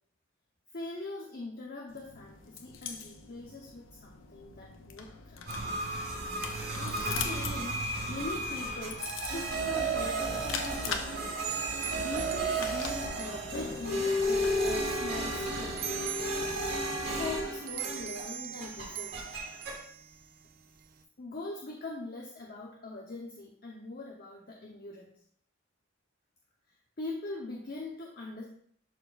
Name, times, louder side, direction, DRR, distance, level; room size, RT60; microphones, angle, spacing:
voice 1, 0.7-5.7 6.7-7.8 8.1-11.4 12.0-15.9 17.0-19.2 21.2-25.2 27.0-28.4, left 2 dB, 50° left, -2 dB, 0.9 m, -42 dB
sound 1, 1.9-17.3, left 5 dB, 85° left, 0.7 m, -43 dB
sound 2, 5.5-18.3 18.6-19.8, right 1 dB, 65° right, 2.9 m, -33 dB
sound 3, 11.4-21.0, right 11 dB, 50° right, 0.6 m, -43 dB
11.5 x 4.2 x 2.5 m, 0.64 s
head